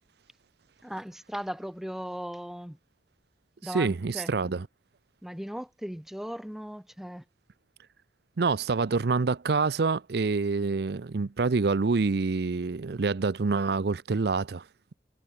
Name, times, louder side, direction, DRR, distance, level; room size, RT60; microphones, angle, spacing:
voice 1, 0.8-2.8 3.6-4.5 5.2-7.2, equal, ahead, 0.4 m, -37 dB
voice 2, 3.7-4.6 8.4-14.6, right 4 dB, 60° right, 0.5 m, -26 dB
head